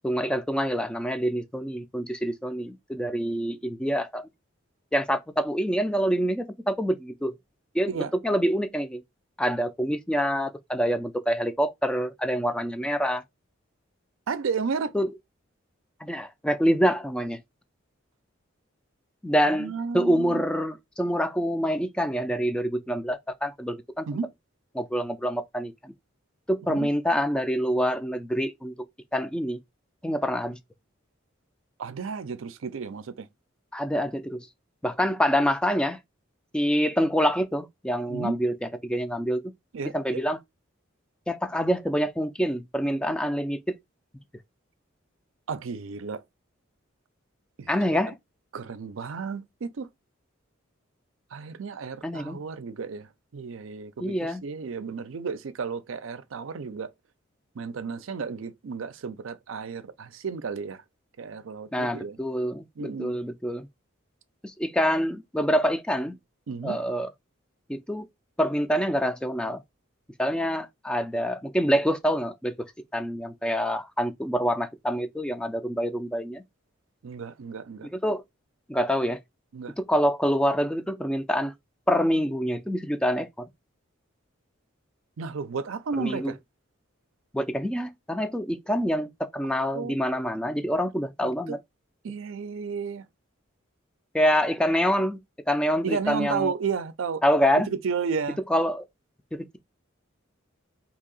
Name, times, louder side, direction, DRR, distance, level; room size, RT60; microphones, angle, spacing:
voice 1, 0.0-4.3 4.9-7.4 7.7-7.9 8.2-9.0 9.4-13.2 14.9-15.1 16.0-17.4 19.2-24.1 24.7-25.9 26.5-28.7 29.1-29.6 30.0-30.6 33.7-34.4 34.8-36.0 36.5-38.5 38.8-39.4 39.9-40.4 41.3-43.7 47.7-48.2 52.0-52.4 54.0-54.4 61.7-63.7 64.4-66.2 66.6-67.1 67.7-68.1 68.4-69.6 70.2-72.6 72.9-76.4 77.9-78.2 78.7-79.2 79.8-81.5 81.9-83.5 86.0-86.3 87.3-91.6 94.1-95.2 95.5-96.5 97.2-97.7 98.5-98.8 99.3-99.6, equal, 5° left, 0.3 m, -26 dB
voice 2, 14.3-14.9 19.4-20.4 24.1-24.3 26.7-26.9 31.8-33.3 38.1-38.4 39.7-40.2 45.5-46.2 47.6-47.7 48.5-49.9 51.3-56.9 57.5-60.8 61.2-62.2 62.8-63.2 66.5-66.8 77.0-77.9 79.5-79.7 85.2-86.4 89.7-90.0 91.2-91.6 92.0-93.0 95.8-97.2 97.7-98.4, right 5 dB, 75° right, 0.5 m, -33 dB
2.8 x 2.8 x 3.8 m
head